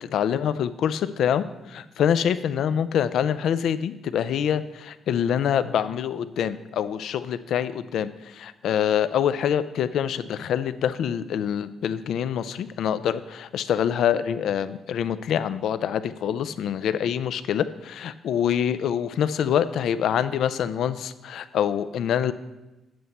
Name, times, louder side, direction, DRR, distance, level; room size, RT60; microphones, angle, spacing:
voice 1, 0.1-22.3, left 9 dB, 70° left, 13 dB, 0.4 m, -25 dB
7.8 x 7.7 x 4.1 m, 1.0 s
cardioid pair, 90°, 0 cm